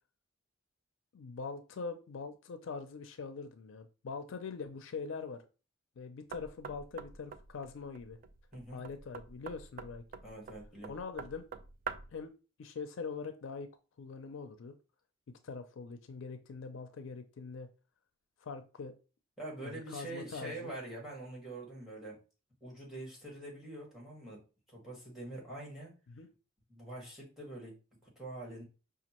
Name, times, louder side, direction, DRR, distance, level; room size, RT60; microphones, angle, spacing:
voice 1, 1.1-5.4 6.0-8.2 8.7-10.0 10.9-11.4 12.1-12.3 12.6-13.7 14.0-14.7 15.3-17.7 18.4-18.9 19.6-20.7 26.1-26.3, left 4 dB, 70° left, 9 dB, 0.4 m, -43 dB
Knock, 6.3-12.2, right 6 dB, 45° right, 0.3 m, -46 dB
voice 2, 10.2-10.9 19.4-22.2 22.6-24.4 24.7-25.9 26.7-28.6, right 2 dB, ahead, -2 dB, 1.6 m, -45 dB
5.1 x 2.4 x 2.9 m, 0.33 s
head